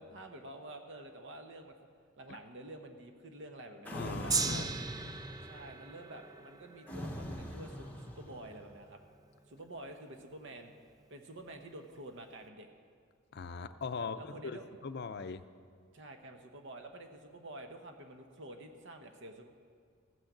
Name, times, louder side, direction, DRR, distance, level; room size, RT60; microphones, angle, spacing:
voice 1, 0.0-1.8 2.2-4.3 5.4-9.0 9.5-10.7 11.1-12.7 14.0-14.7 15.9-19.5, right 1 dB, 60° right, 5 dB, 0.9 m, -49 dB
sound 1, 3.8-5.7 6.9-8.7, equal, 10° left, 0.9 m, -42 dB
voice 2, 3.9-4.7 13.3-15.4, left 5 dB, 50° left, 11 dB, 0.5 m, -40 dB
Gong, 4.3-10.7 11.4-11.5, right 5 dB, 15° right, 0.3 m, -40 dB
15.0 x 6.4 x 7.3 m, 2.1 s
head